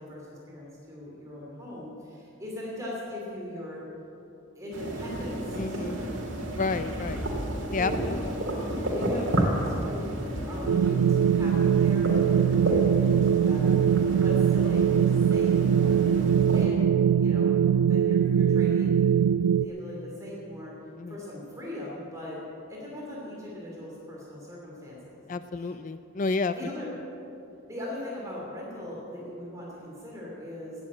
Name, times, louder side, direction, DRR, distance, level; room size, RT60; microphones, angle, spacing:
voice 1, 0.0-3.8 4.5-6.2 7.8-8.2 8.9-10.1 10.5-16.2 16.5-16.8 17.1-17.5 17.9-19.1 19.5-20.7 21.1-22.4 22.7-25.2 25.6-25.7 26.5-26.9 27.7-30.8, left 1 dB, 15° right, -5 dB, 2.9 m, -39 dB
sound 1, 4.7-16.7, right 1 dB, 55° right, 2.4 m, -32 dB
voice 2, 5.6-6.0 6.4-7.3 7.7-8.3 16.4-16.7 21.0-21.2 25.3-26.6, left 3 dB, 35° left, 11 dB, 0.4 m, -31 dB
sound 2, 10.7-19.7, right 8 dB, 80° right, 0.3 m, -22 dB
17.5 x 7.8 x 8.6 m, 2.9 s
head